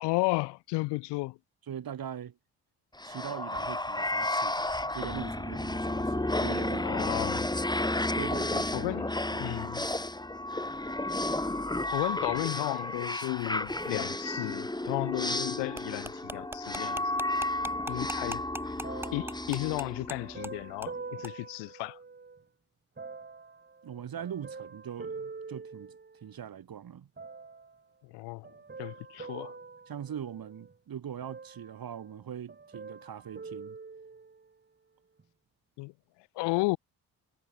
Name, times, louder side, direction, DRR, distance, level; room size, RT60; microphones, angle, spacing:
voice 1, 0.0-1.4 6.8-7.5 8.7-9.9 11.9-17.1 17.9-18.4 19.1-22.0 28.1-28.4 28.8-29.5 35.8-35.9 36.4-36.8, left 23 dB, 80° left, 0.6 m, -33 dB
voice 2, 1.7-2.4 3.0-7.0 8.1-8.9 9.3-9.6 23.8-27.1 29.9-33.8, right 9 dB, 55° right, 3.4 m, -41 dB
sound 1, 3.0-20.6, left 1 dB, 10° left, 2.5 m, -32 dB
sound 2, 15.8-20.2 20.4-20.5 20.8-21.0 21.2-21.3, right 1 dB, 5° right, 0.9 m, -40 dB
sound 3, 18.8-22.4 23.0-26.5 27.2-27.8 28.4-30.8 31.2-32.2 32.5-34.5 35.2-35.3, right 4 dB, 25° right, 1.7 m, -45 dB
supercardioid pair, 55°, 41 cm